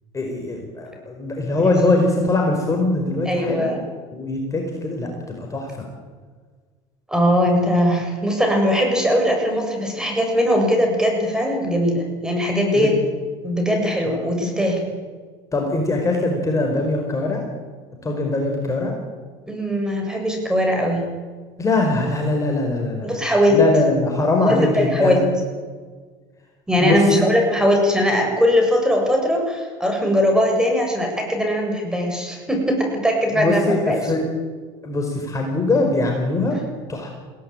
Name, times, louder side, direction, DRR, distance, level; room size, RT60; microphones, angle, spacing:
voice 1, 0.1-3.8 4.1-5.7 12.7-12.9 14.1-14.2 15.5-17.4 18.0-19.0 21.6-23.1 23.5-25.2 26.8-27.0 33.4-34.2 34.8-36.6 36.9-37.1, left 2 dB, 25° left, 1 dB, 4.8 m, -22 dB
voice 2, 3.2-3.8 7.1-12.9 13.4-14.8 19.5-21.0 23.0-23.6 24.4-25.3 26.7-34.1, equal, 5° right, 2 dB, 7.5 m, -20 dB
22.0 x 17.5 x 8.9 m, 1.5 s
supercardioid pair, 100°, 14 cm